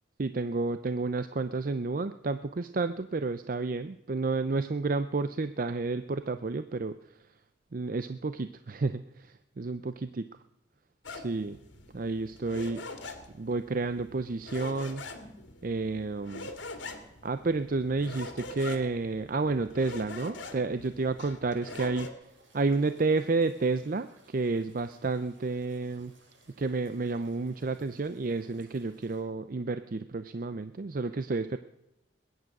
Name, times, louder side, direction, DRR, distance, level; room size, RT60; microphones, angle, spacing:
voice 1, 0.2-7.0 7.7-10.1 11.1-11.6 11.9-12.8 13.4-15.0 15.6-16.5 17.2-22.1 22.5-26.1 26.6-31.6, right 3 dB, 45° right, 11 dB, 0.5 m, -30 dB
sound 1, 11.0-22.1, left 2 dB, 75° left, 2.0 m, -44 dB
sound 2, 22.2-29.2, right 2 dB, 75° right, 6.1 m, -62 dB
21.0 x 9.4 x 6.0 m, 0.91 s
head